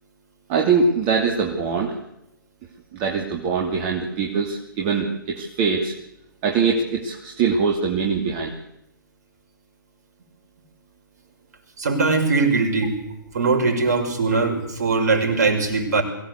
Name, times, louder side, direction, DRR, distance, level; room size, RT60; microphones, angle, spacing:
voice 1, 0.5-2.0 2.9-5.9 6.4-8.6, right 5 dB, 30° right, 1 dB, 2.6 m, -22 dB
voice 2, 11.8-13.0 13.3-16.0, right 4 dB, 45° right, 4 dB, 6.0 m, -20 dB
23.0 x 17.0 x 8.3 m, 0.83 s
figure-of-eight pair, 135°, 12 cm